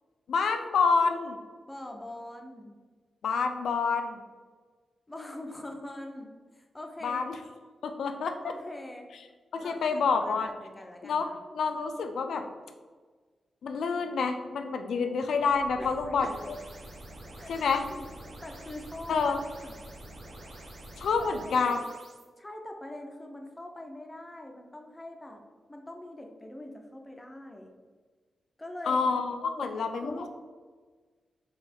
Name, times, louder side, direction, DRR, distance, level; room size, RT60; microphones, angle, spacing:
voice 1, 0.3-1.4 3.2-4.2 7.0-7.4 7.8-8.4 9.5-10.5 11.0-11.3 11.5-12.5 13.6-16.6 17.5-17.8 19.1-19.4 21.0-21.8 28.9-30.3, left 5 dB, 90° left, 6 dB, 0.4 m, -28 dB
voice 2, 1.7-2.7 5.1-7.3 8.4-9.1 9.6-11.4 15.8-15.9 16.2-16.3 17.4-18.1 18.4-19.2 19.6-19.7 21.2-21.7 22.4-25.4 25.7-27.7 28.6-29.0 29.4-29.7 30.0-30.3, left 1 dB, 15° left, 3 dB, 0.5 m, -43 dB
sound 1, 15.4-22.2, right 1 dB, 80° right, 1.2 m, -47 dB
4.0 x 2.9 x 4.3 m, 1.4 s
wide cardioid pair, 155°, 0 cm